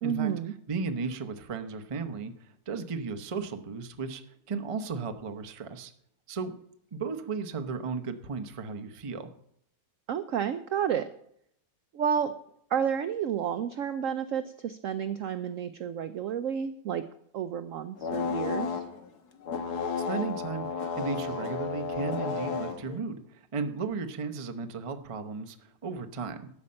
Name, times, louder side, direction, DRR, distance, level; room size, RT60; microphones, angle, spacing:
voice 1, 0.0-0.5 10.1-11.1 11.9-12.3 12.7-17.0 17.3-18.8, right 8 dB, 85° right, 11 dB, 0.7 m, -30 dB
voice 2, 0.7-5.9 6.3-6.5 6.9-9.3 19.9-26.5, right 4 dB, 50° right, 7 dB, 0.3 m, -35 dB
sound 1, 18.0-19.1 19.4-23.0, left 5 dB, 60° left, 1.6 m, -32 dB
13.0 x 5.5 x 8.6 m, 0.71 s
omnidirectional pair, 2.0 m